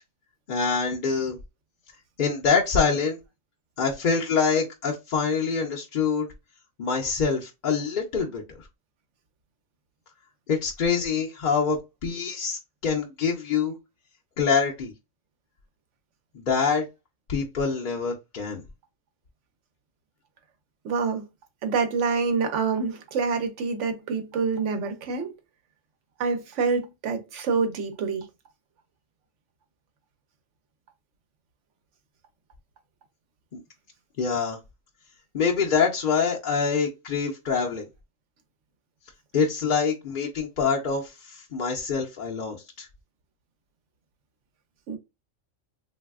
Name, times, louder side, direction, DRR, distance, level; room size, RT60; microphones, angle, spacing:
voice 1, 0.5-1.4 2.2-3.2 3.8-6.3 6.8-8.4 10.5-13.7 14.4-14.9 16.3-16.9 17.3-18.6 33.5-33.6 34.2-34.6 35.3-37.8 39.3-42.9, left 5 dB, 55° left, 0.6 m, -25 dB
voice 2, 20.8-21.3 21.6-25.3 26.2-28.3 44.9-45.0, right 5 dB, 75° right, 1.0 m, -26 dB
3.3 x 2.6 x 2.3 m
omnidirectional pair, 1.3 m